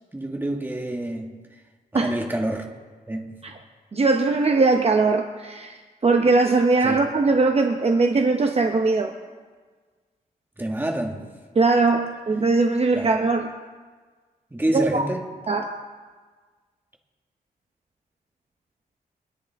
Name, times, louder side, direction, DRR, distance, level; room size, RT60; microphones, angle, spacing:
voice 1, 0.1-1.4 1.9-2.7 3.1-3.6 6.8-7.0 10.6-11.2 12.9-13.1 14.5-15.2, right 1 dB, 15° right, 1 dB, 1.8 m, -27 dB
voice 2, 3.9-9.1 11.6-13.5 14.7-15.0 15.5-15.8, right 3 dB, 40° right, 4 dB, 0.9 m, -20 dB
24.0 x 10.0 x 3.6 m, 1.5 s
wide cardioid pair, 100°, 16 cm